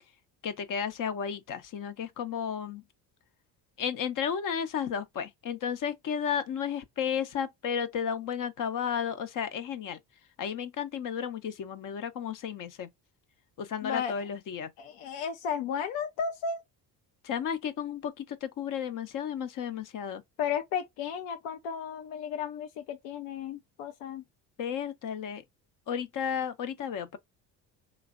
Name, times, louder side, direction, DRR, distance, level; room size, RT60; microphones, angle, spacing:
voice 1, 0.4-2.8 3.8-10.0 10.4-12.9 13.6-14.7 17.2-20.2 24.6-25.4 25.9-27.2, left 8 dB, 45° left, 0.7 m, -33 dB
voice 2, 13.8-14.3 14.8-16.6 20.4-24.2, left 7 dB, 80° left, 0.6 m, -34 dB
3.1 x 2.1 x 2.3 m
supercardioid pair, 80°, 43 cm